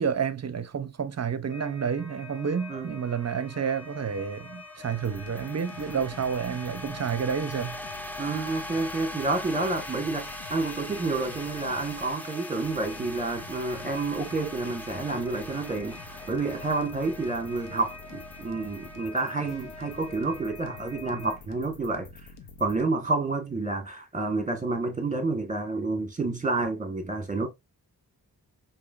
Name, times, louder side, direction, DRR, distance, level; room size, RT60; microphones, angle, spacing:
voice 1, 0.0-7.8, right 7 dB, 40° right, 0.6 m, -30 dB
sound 1, 1.5-21.4, left 3 dB, 40° left, 1.0 m, -46 dB
sound 2, 2.0-20.3, left 1 dB, 5° left, 0.5 m, -43 dB
sound 3, 5.0-22.8, left 4 dB, 85° left, 0.8 m, -48 dB
voice 2, 8.2-22.3 22.6-27.5, right 3 dB, 20° right, 1.1 m, -29 dB
4.7 x 2.7 x 2.4 m
wide cardioid pair, 75°, 39 cm